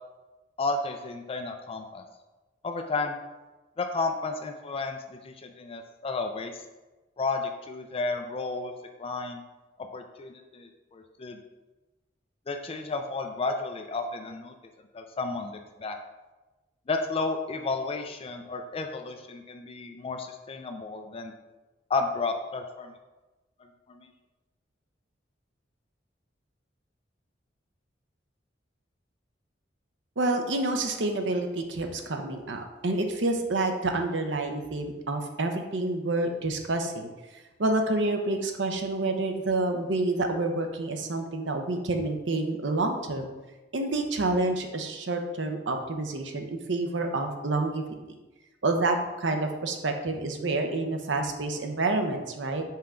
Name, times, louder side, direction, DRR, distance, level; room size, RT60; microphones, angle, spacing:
voice 1, 0.6-2.0 2.6-3.2 3.8-6.5 7.2-8.7 9.0-9.4 9.9-11.4 12.5-14.5 14.9-16.0 16.9-21.3 21.9-22.9 23.9-24.1, left 3 dB, 30° left, 6 dB, 0.4 m, -32 dB
voice 2, 30.2-37.1 37.6-43.3 43.7-47.8 48.6-52.6, right 2 dB, 70° right, 4 dB, 0.7 m, -28 dB
5.7 x 4.5 x 3.7 m, 1.1 s
head